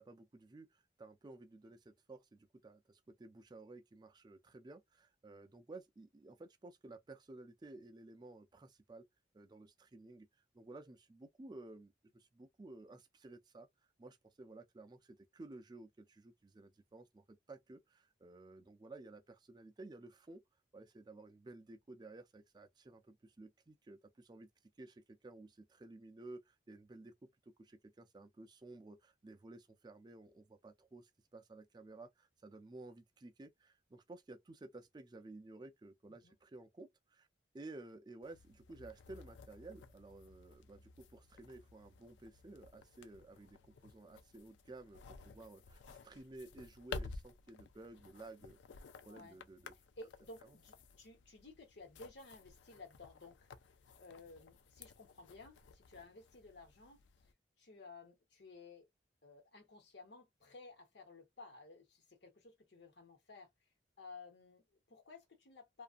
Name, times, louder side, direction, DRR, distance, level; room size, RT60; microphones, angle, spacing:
voice 1, 0.0-9.0 9.3-10.3 10.5-13.7 14.0-20.4 20.7-24.5 24.8-27.3 27.6-37.3 37.5-48.6 49.0-49.7 50.4-50.6, right 2 dB, 25° right, 0.4 m, -54 dB
sound 1, 38.2-57.3, left 4 dB, 90° left, 0.4 m, -54 dB
voice 2, 49.1-49.4 50.0-53.5 53.9-57.3 57.6-58.9 59.2-63.5 64.0-65.8, left 3 dB, 70° left, 1.0 m, -56 dB
2.5 x 2.4 x 2.5 m
head